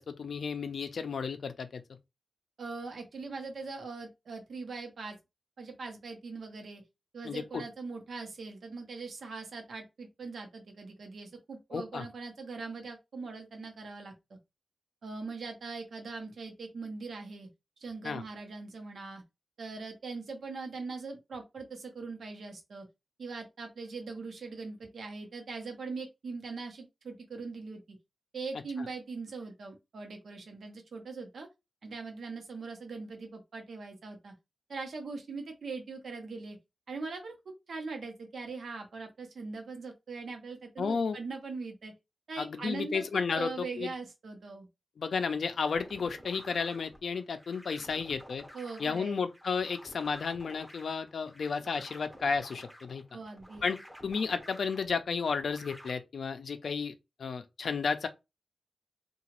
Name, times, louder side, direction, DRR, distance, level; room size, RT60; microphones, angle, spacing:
voice 1, 0.0-1.8 7.2-7.6 11.7-12.1 18.0-18.2 28.8-28.9 40.8-41.2 42.4-43.9 45.0-48.5 48.8-53.0 53.6-53.8 54.0-56.9 57.2-58.1, left 5 dB, 75° left, 0.4 m, -33 dB
voice 2, 2.6-5.2 5.6-6.8 7.1-14.1 15.0-17.5 17.8-19.2 19.6-22.9 23.2-27.8 28.3-31.5 31.8-34.3 34.7-36.6 36.9-41.9 42.3-44.7 48.5-49.2 53.1-53.7, right 4 dB, 75° right, 0.8 m, -41 dB
sound 1, 45.7-55.9, equal, ahead, 0.6 m, -52 dB
2.8 x 2.3 x 3.0 m
wide cardioid pair, 105°, 0 cm